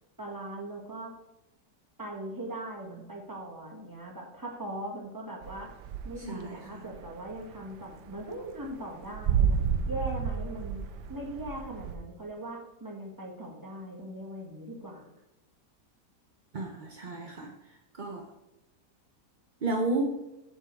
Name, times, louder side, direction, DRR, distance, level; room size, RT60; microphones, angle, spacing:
voice 1, 0.2-1.1 2.0-5.7 6.0-10.8 11.1-15.1, right 1 dB, 10° right, -1 dB, 1.8 m, -40 dB
sound 1, 5.4-6.5 6.7-11.9, right 7 dB, 85° right, 1.3 m, -30 dB
voice 2, 6.2-6.9 16.5-18.3 19.6-20.2, right 2 dB, 45° right, 2 dB, 0.7 m, -33 dB
7.8 x 7.6 x 4.7 m, 0.96 s
omnidirectional pair, 1.8 m